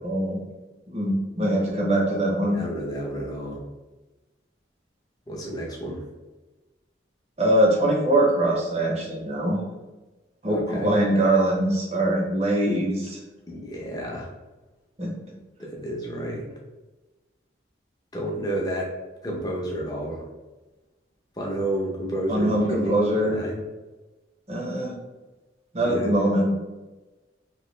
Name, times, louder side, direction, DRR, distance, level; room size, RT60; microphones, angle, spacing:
voice 1, 0.0-0.4 0.9-2.6 7.4-9.6 10.4-13.2 15.0-15.1 22.3-23.4 24.5-24.9 25.7-26.5, right 1 dB, 35° right, -1 dB, 0.7 m, -22 dB
voice 2, 2.5-3.6 5.3-6.0 10.5-10.9 13.5-14.3 15.6-16.5 18.1-18.9 19.2-20.2 21.4-23.6 25.8-26.3, right 1 dB, 20° left, -2 dB, 0.6 m, -31 dB
3.0 x 2.7 x 3.1 m, 1.1 s
head